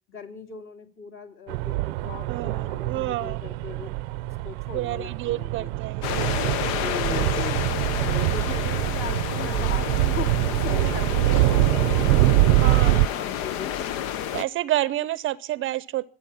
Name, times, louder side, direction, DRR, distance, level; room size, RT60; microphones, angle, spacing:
voice 1, 0.1-3.9 4.2-5.7 6.6-7.7 8.1-14.0, left 7 dB, 40° left, 3.0 m, -39 dB
sound 1, 1.5-13.1, right 19 dB, 80° right, 0.7 m, -24 dB
voice 2, 2.3-3.4 4.7-6.3 11.3-11.6 12.6-12.9 14.3-16.0, right 15 dB, 40° right, 0.7 m, -29 dB
sound 2, 6.0-14.4, left 10 dB, 65° left, 1.0 m, -30 dB
26.0 x 8.9 x 5.7 m
supercardioid pair, 135°, 31 cm